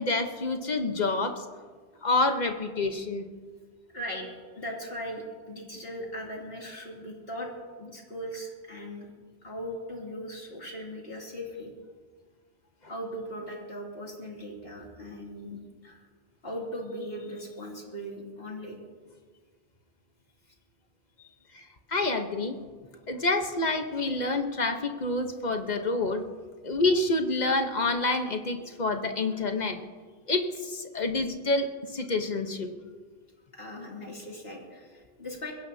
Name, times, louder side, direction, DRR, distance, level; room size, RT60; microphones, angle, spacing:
voice 1, 0.0-1.3 2.0-3.2 21.9-22.6 23.1-26.2 26.6-30.0 30.3-31.7 31.9-32.7, left 2 dB, 45° left, 5 dB, 1.2 m, -27 dB
voice 2, 3.9-4.3 4.5-7.5 7.8-9.1 9.4-11.7 12.9-16.0 16.4-18.8 21.2-21.4 33.5-35.5, equal, 65° left, -2 dB, 3.0 m, -39 dB
21.5 x 16.5 x 2.8 m, 1.5 s
omnidirectional pair, 1.1 m